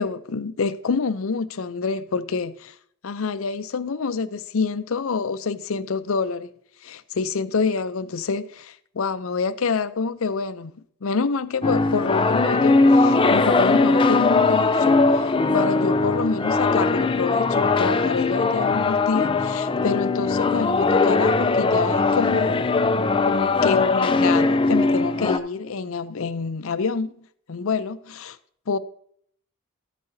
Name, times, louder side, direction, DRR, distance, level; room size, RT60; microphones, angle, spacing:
voice 1, 0.0-2.7 3.0-6.5 6.8-10.7 11.0-22.7 23.2-27.1 27.5-28.4 28.7-28.8, left 5 dB, 70° left, 0.5 m, -27 dB
sound 1, 11.6-25.4, left 3 dB, 25° left, 0.4 m, -20 dB
13.0 x 8.7 x 2.7 m
head